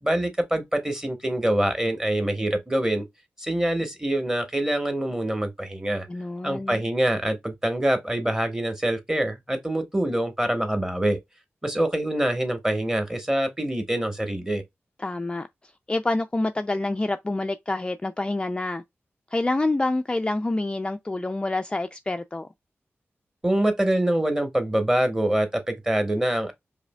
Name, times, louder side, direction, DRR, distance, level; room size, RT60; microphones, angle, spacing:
voice 1, 0.0-3.0 3.4-6.1 6.4-11.2 11.6-14.6 23.4-26.5, right 1 dB, 10° right, 1.0 m, -25 dB
voice 2, 6.1-6.8 15.0-15.5 15.9-18.8 19.3-22.5, left 2 dB, 20° left, 0.3 m, -27 dB
4.8 x 2.8 x 2.2 m
wide cardioid pair, 95°, 5 cm